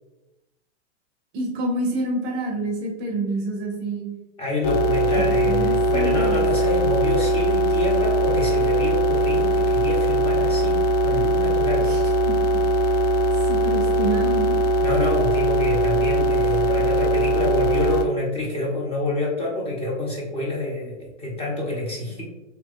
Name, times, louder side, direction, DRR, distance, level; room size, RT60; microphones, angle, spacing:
voice 1, 1.3-4.1 5.4-6.4 11.8-12.0 12.3-12.4 13.5-14.6 16.6-16.8, right 1 dB, 35° right, 1 dB, 0.7 m, -27 dB
voice 2, 4.4-11.9 14.8-22.2, left 2 dB, 15° left, -3 dB, 0.8 m, -27 dB
sound 1, 4.6-18.1, right 1 dB, 55° left, 0.5 m, -20 dB
3.0 x 2.8 x 3.6 m, 1.0 s
hypercardioid pair, 130°, 36 cm